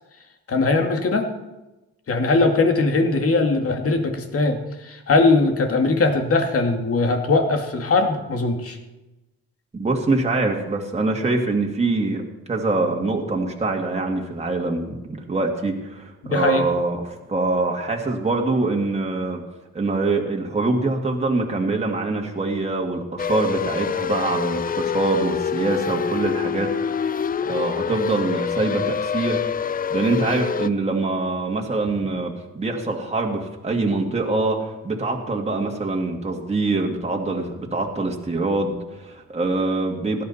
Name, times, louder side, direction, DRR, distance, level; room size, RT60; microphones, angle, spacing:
voice 1, 0.5-1.3 2.1-8.8 16.2-16.6, left 3 dB, 50° left, 4 dB, 2.2 m, -20 dB
voice 2, 9.7-12.2 12.5-17.0 17.3-19.4 19.7-29.4 29.9-40.2, right 3 dB, 20° right, 0 dB, 2.2 m, -24 dB
sound 1, 23.2-30.7, left 7 dB, 30° left, 0.4 m, -26 dB
17.0 x 11.5 x 4.2 m, 1.0 s
cardioid pair, 90°, 30 cm